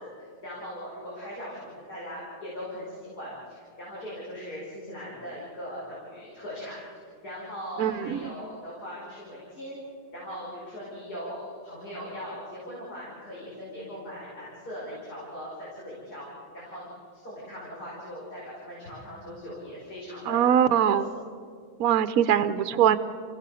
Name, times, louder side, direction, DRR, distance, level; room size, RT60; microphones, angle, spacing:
voice 1, 0.0-6.8 7.0-9.8 10.1-21.0, equal, 80° left, -7 dB, 5.9 m, -40 dB
voice 2, 7.8-8.3 20.3-21.1 21.8-23.0, right 9 dB, 70° right, 12 dB, 1.1 m, -22 dB
28.0 x 16.5 x 6.9 m, 2.3 s
omnidirectional pair, 1.7 m